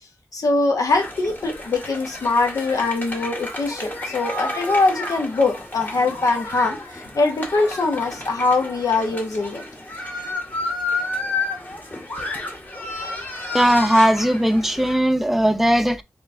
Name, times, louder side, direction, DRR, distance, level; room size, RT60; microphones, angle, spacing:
voice 1, 0.3-9.6, left 3 dB, 80° left, 0.9 m, -22 dB
sound 1, 0.9-14.9, left 2 dB, 30° left, 1.9 m, -31 dB
voice 2, 13.5-16.0, equal, 5° right, 0.6 m, -18 dB
3.8 x 3.1 x 3.6 m
cardioid pair, 55°, 6 cm